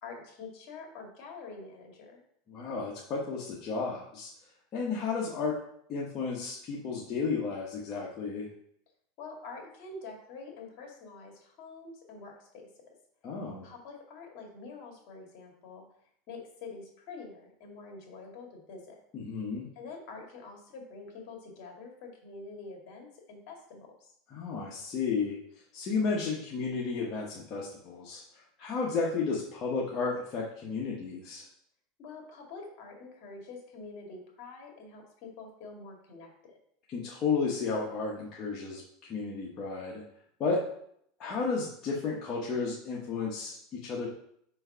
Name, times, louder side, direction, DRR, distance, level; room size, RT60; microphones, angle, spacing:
voice 1, 0.0-2.2 9.2-12.5 13.6-15.8 16.3-19.0 19.8-24.1 32.0-36.3, left 4 dB, 50° left, 1 dB, 2.1 m, -46 dB
voice 2, 2.5-4.3 4.7-5.6 5.9-8.5 13.2-13.7 19.1-19.7 24.3-25.4 25.7-28.2 28.6-31.5 36.9-38.8 39.1-40.0 40.4-40.6 41.2-44.1, left 4 dB, 35° left, -4 dB, 1.1 m, -32 dB
4.5 x 4.5 x 5.6 m, 0.69 s
supercardioid pair, 145°, 0 cm